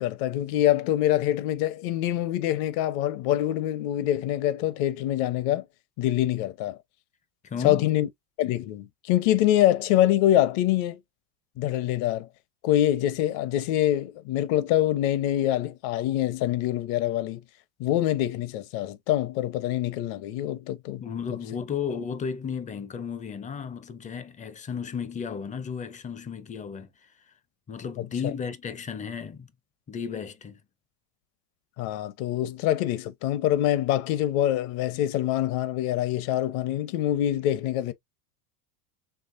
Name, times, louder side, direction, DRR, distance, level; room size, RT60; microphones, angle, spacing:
voice 1, 0.0-5.6 6.0-6.8 7.6-8.1 8.4-11.0 11.6-12.3 12.6-17.4 17.8-21.0 31.8-37.9, left 13 dB, 50° left, 0.9 m, -25 dB
voice 2, 7.4-7.9 21.0-27.3 27.7-29.5 29.9-30.6, left 6 dB, 15° left, 0.5 m, -34 dB
4.8 x 3.3 x 2.5 m
supercardioid pair, 125°, 47 cm